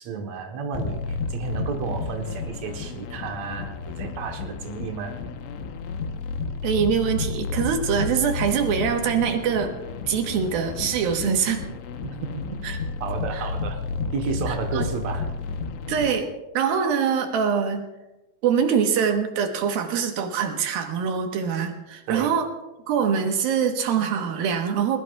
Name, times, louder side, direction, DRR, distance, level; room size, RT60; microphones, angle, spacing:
voice 1, 0.0-5.2 12.0-12.1 13.0-13.8 14.1-15.3 22.1-22.4, right 5 dB, 85° right, 3 dB, 1.5 m, -32 dB
sound 1, 0.7-16.1, left 4 dB, 85° left, 3.4 m, -32 dB
voice 2, 6.6-9.7 10.1-11.6 12.6-12.8 13.3-13.4 14.5-14.9 15.9-17.9 18.4-22.5 22.9-25.0, right 7 dB, 70° right, 5 dB, 2.7 m, -24 dB
21.5 x 20.5 x 2.4 m, 1.0 s
omnidirectional pair, 5.1 m